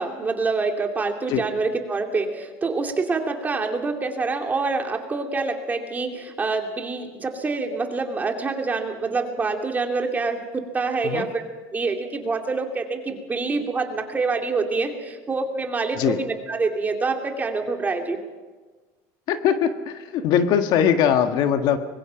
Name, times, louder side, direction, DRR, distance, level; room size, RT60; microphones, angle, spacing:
voice 1, 0.0-11.4 11.7-18.2, right 3 dB, 20° right, 3 dB, 2.9 m, -26 dB
voice 2, 19.3-21.8, left 8 dB, 55° left, 8 dB, 1.5 m, -21 dB
24.5 x 21.5 x 5.9 m, 1.3 s
supercardioid pair, 130°, 8 cm